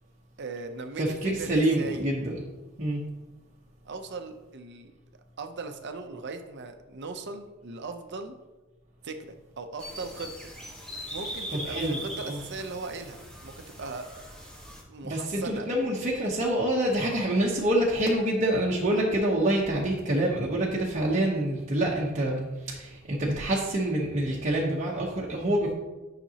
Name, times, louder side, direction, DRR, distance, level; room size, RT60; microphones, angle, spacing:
voice 1, 0.4-2.0 3.8-4.9 5.4-8.4 9.0-10.3 11.1-14.1 14.9-15.7, right 3 dB, 55° right, 7 dB, 0.7 m, -38 dB
voice 2, 1.0-2.4 2.8-3.0 11.5-12.4 15.0-25.7, right 1 dB, 35° right, -4 dB, 1.0 m, -26 dB
sound 1, 9.8-14.8, equal, 5° left, 1.4 m, -40 dB
10.0 x 5.9 x 2.9 m, 1.1 s
head